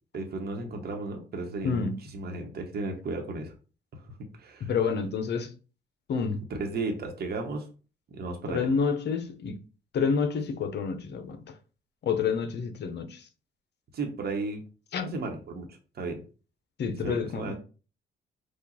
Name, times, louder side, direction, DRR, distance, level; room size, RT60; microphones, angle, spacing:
voice 1, 0.1-1.9 2.1-3.5 3.9-4.7 6.5-7.6 8.1-8.7 13.9-14.6 15.0-16.2 17.0-17.5, right 3 dB, 55° right, 1.1 m, -34 dB
voice 2, 1.6-2.0 4.6-5.5 6.1-6.4 8.5-9.6 9.9-11.4 12.0-13.3 14.9-15.1 16.8-17.5, left 5 dB, 60° left, 0.8 m, -28 dB
4.9 x 2.4 x 4.0 m
cardioid pair, 90°, 20 cm